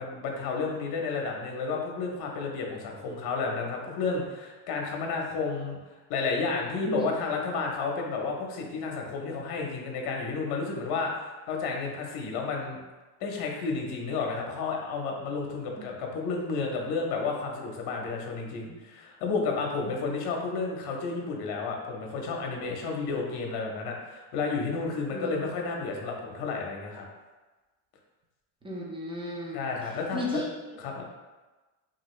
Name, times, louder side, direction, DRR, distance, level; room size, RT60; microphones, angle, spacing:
voice 1, 0.0-5.8 6.1-12.8 13.2-27.1 29.5-30.4 30.8-31.0, left 4 dB, 50° left, 1 dB, 0.8 m, -31 dB
voice 2, 28.6-29.7 30.1-30.5, equal, 10° right, -3 dB, 0.5 m, -34 dB
2.7 x 2.5 x 3.1 m, 1.2 s
supercardioid pair, 105°, 48 cm